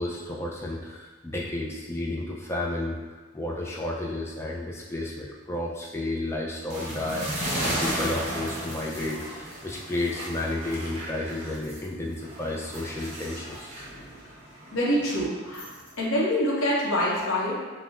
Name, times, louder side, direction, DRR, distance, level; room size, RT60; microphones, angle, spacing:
voice 1, 0.0-13.7, left 1 dB, 10° left, -3 dB, 0.4 m, -32 dB
sound 1, 6.7-11.9 12.2-15.9, right 1 dB, 35° right, 0.9 m, -35 dB
voice 2, 14.7-15.6 16.0-17.5, equal, 80° left, -6 dB, 0.8 m, -25 dB
5.3 x 2.0 x 2.4 m, 1.3 s
head